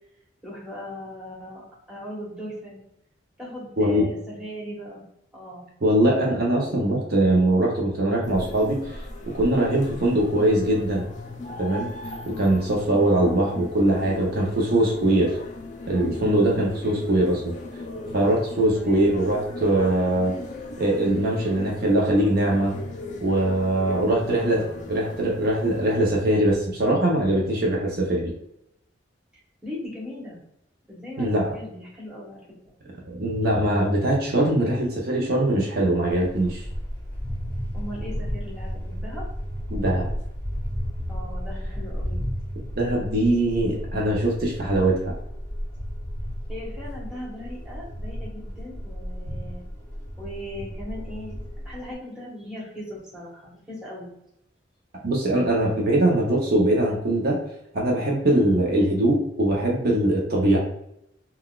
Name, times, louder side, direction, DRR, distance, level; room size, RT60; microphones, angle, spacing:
voice 1, 0.4-2.8 3.4-5.0 5.3-5.7 13.2-13.5 18.7-19.2 24.0-24.5 29.6-30.4 30.9-32.4 32.6-32.7 37.7-39.3 41.1-42.2 46.5-49.6 50.2-54.1, left 1 dB, 5° right, -6 dB, 1.1 m, -38 dB
voice 2, 5.8-9.0 9.3-11.1 11.6-11.9 12.4-15.4 15.9-17.6 18.1-20.3 20.8-22.7 23.2-24.6 24.9-28.3 31.2-31.5 33.1-36.7 39.7-40.1 42.8-44.9 55.0-57.4 57.7-60.6, right 1 dB, 50° right, -2 dB, 0.6 m, -22 dB
sound 1, 8.2-26.0, left 2 dB, 40° left, 0.4 m, -38 dB
sound 2, 36.1-51.9, equal, 15° left, 0.7 m, -33 dB
3.8 x 2.2 x 2.3 m, 0.79 s
head